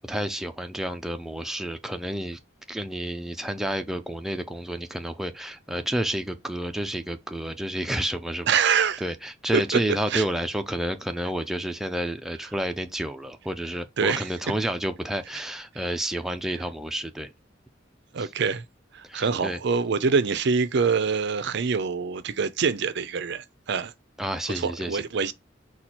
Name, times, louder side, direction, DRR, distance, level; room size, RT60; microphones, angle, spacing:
voice 1, 0.1-2.4 2.7-17.3 18.2-18.3 19.0-19.6 24.2-25.0, right 1 dB, ahead, 0.4 m, -30 dB
voice 2, 8.5-9.0 9.5-9.8 10.1-10.2 14.0-14.3 15.8-15.9 18.1-18.6 18.9-23.9 24.5-25.3, right 5 dB, 65° right, 0.5 m, -25 dB
4.3 x 2.3 x 4.2 m
head